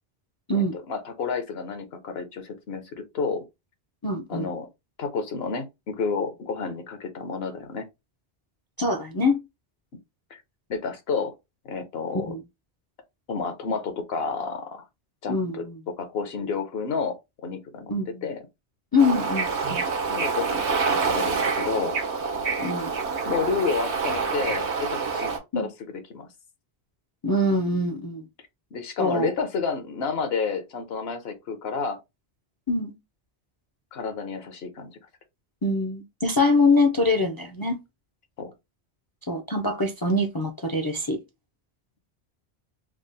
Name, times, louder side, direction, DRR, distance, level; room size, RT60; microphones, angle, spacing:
voice 1, 0.5-3.4 4.3-4.7 5.0-7.9 10.3-10.4 10.7-11.3 11.6-12.3 13.3-14.8 15.2-17.9 18.2-18.4 20.1-22.0 23.3-25.3 25.6-25.7 26.1-26.3 28.7-32.0 33.9-35.0 38.4-38.5, left 5 dB, 70° left, 1.0 m, -30 dB
voice 2, 4.0-4.5 8.8-9.4 12.1-12.4 15.3-15.8 17.9-18.3 18.9-19.9 22.6-22.9 25.5-25.7 27.2-28.3 29.0-29.3 32.7-32.9 35.6-37.8 39.3-41.2, left 2 dB, 35° left, 0.3 m, -24 dB
Bird / Ocean, 19.0-25.4, right 4 dB, 85° right, 1.2 m, -27 dB
3.6 x 2.0 x 3.8 m
omnidirectional pair, 1.1 m